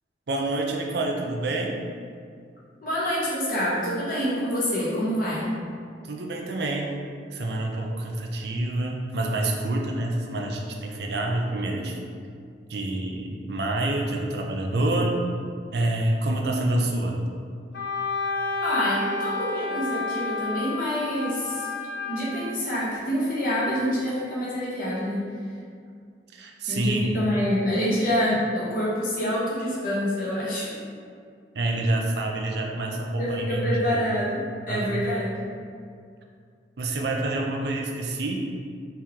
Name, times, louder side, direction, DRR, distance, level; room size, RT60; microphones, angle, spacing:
voice 1, 0.3-1.8 6.1-7.0 7.3-12.0 12.7-15.2 15.7-17.3 26.3-27.2 31.5-34.0 34.7-35.1 36.8-38.4, right 2 dB, 65° right, 1 dB, 0.5 m, -27 dB
voice 2, 2.8-5.5 18.6-21.7 22.1-25.2 26.7-30.8 33.2-35.5, equal, 50° left, -7 dB, 1.3 m, -26 dB
Wind instrument woodwind instrument, 17.7-22.4, left 3 dB, 85° left, 1.2 m, -30 dB
4.4 x 3.1 x 3.6 m, 2.2 s
head